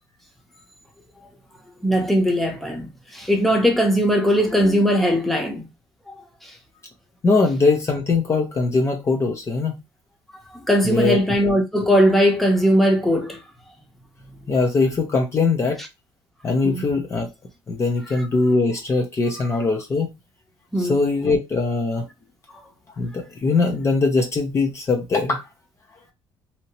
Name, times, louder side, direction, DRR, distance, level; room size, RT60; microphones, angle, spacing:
voice 1, 1.8-5.7 6.4-6.5 10.5-13.4 16.6-16.9 20.7-20.9, equal, ahead, 0.9 m, -19 dB
voice 2, 7.2-9.8 10.8-11.2 14.5-15.8 16.4-17.3 17.7-20.1 20.8-22.1 23.0-25.4, left 3 dB, 30° left, 0.7 m, -21 dB
2.8 x 2.8 x 2.8 m
cardioid pair, 125°, 9 cm